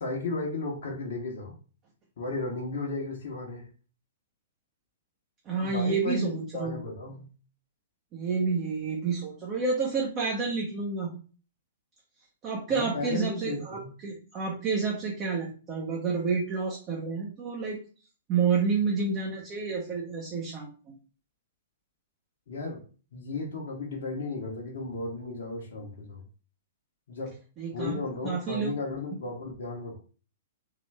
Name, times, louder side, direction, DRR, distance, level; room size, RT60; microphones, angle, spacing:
voice 1, 0.0-1.5 2.2-3.7 5.6-7.3 12.7-13.9 22.5-22.8 23.1-26.2 27.1-27.4 27.7-30.0, left 2 dB, 55° left, -2 dB, 1.1 m, -34 dB
voice 2, 5.5-6.8 8.1-11.1 12.4-17.8 18.3-20.9 27.6-28.7, right 5 dB, 30° right, -1 dB, 0.9 m, -29 dB
3.8 x 3.0 x 3.4 m, 0.37 s
figure-of-eight pair, 110°, 0 cm